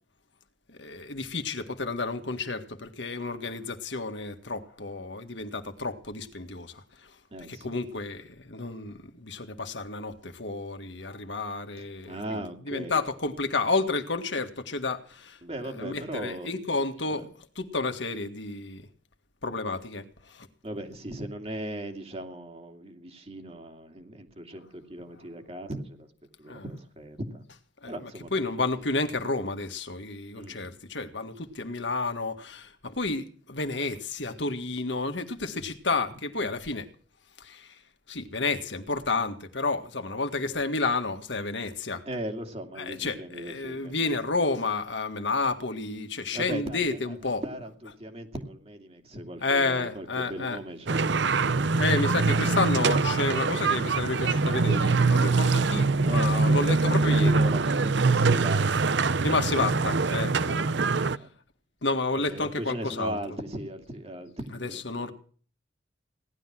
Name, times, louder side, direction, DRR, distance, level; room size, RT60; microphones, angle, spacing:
voice 1, 0.7-6.8 7.5-12.2 12.7-15.4 15.8-17.2 17.6-18.8 19.4-20.5 26.5-26.6 28.3-36.9 37.4-37.8 38.1-42.0 42.8-47.4 49.4-50.6 51.8-57.4 59.2-60.6 61.8-63.2 64.6-65.1, left 3 dB, 65° left, 1.9 m, -30 dB
voice 2, 7.3-7.7 11.8-13.0 15.4-16.5 17.1-17.3 20.6-26.1 26.4-27.4 27.9-28.5 30.3-30.6 42.1-44.1 46.3-51.2 56.0-56.7 57.0-58.9 61.2-61.3 62.1-65.1, right 1 dB, 30° right, 2.5 m, -38 dB
sound 1, 50.9-61.2, right 3 dB, 65° right, 0.7 m, -23 dB
18.0 x 12.0 x 6.0 m
head